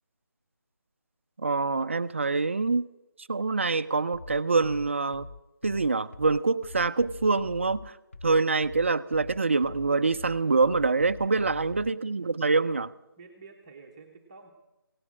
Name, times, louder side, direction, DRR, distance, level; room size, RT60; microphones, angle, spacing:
voice 1, 1.4-2.9 3.3-5.3 5.6-7.9 8.2-12.9, right 3 dB, 35° right, 0.5 m, -25 dB
sound 1, 4.1-12.0, left 3 dB, 35° left, 0.6 m, -44 dB
voice 2, 11.3-11.7 13.2-14.5, right 4 dB, 15° right, 0.9 m, -50 dB
17.0 x 11.0 x 7.4 m
figure-of-eight pair, 170°, 12 cm